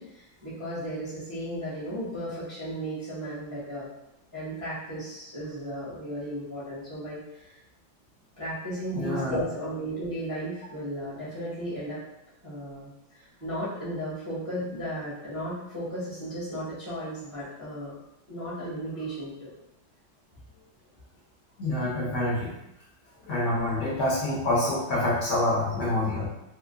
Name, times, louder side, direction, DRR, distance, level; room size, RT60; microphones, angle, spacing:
voice 1, 0.0-3.9 4.3-7.6 8.4-12.0 12.4-18.0 18.3-19.5, equal, 15° right, -10 dB, 0.7 m, -35 dB
voice 2, 8.9-9.4 21.6-22.5 23.2-26.3, left 1 dB, 65° left, -5 dB, 1.2 m, -26 dB
4.4 x 2.1 x 2.4 m, 0.87 s
omnidirectional pair, 2.2 m